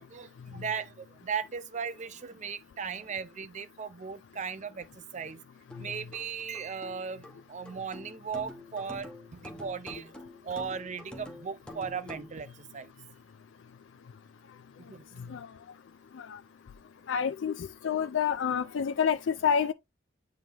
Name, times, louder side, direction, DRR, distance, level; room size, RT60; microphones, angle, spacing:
voice 1, 0.0-5.4 5.8-10.1 10.4-12.5 12.7-12.9 14.9-15.4, right 6 dB, 40° right, 0.5 m, -37 dB
sound 1, 5.7-12.4, left 1 dB, 5° left, 1.0 m, -47 dB
voice 2, 17.1-19.7, left 7 dB, 85° left, 0.4 m, -28 dB
8.8 x 3.7 x 2.9 m
head